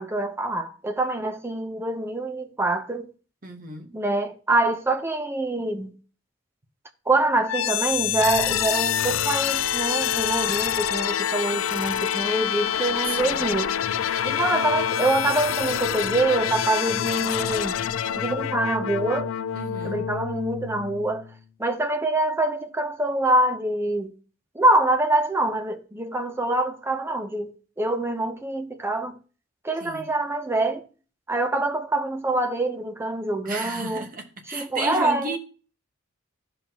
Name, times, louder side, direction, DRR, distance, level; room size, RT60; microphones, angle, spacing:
voice 1, 0.0-3.1 3.9-5.9 7.1-13.7 14.2-17.7 18.2-19.3 19.8-21.2 21.6-24.1 24.5-27.5 27.8-29.2 29.6-30.8 31.3-34.0 34.5-35.4, right 2 dB, 10° right, 0.8 m, -25 dB
voice 2, 3.4-3.9 13.1-13.5 19.5-20.1 29.8-30.1 33.4-35.4, right 2 dB, 45° right, 1.3 m, -33 dB
sound 1, 7.5-21.4, left 9 dB, 80° left, 0.4 m, -26 dB
14.5 x 5.6 x 2.9 m
head